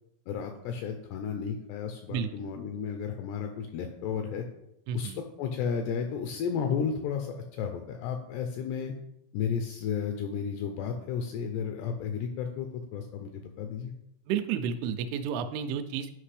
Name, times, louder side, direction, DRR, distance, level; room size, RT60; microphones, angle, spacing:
voice 1, 0.3-4.4 4.9-5.1 5.4-8.9 9.3-13.9, left 7 dB, 85° left, 5 dB, 2.4 m, -33 dB
voice 2, 2.1-2.5 4.9-5.2 14.3-16.2, right 7 dB, 85° right, 7 dB, 3.0 m, -31 dB
11.5 x 5.1 x 3.3 m, 0.82 s
omnidirectional pair, 5.4 m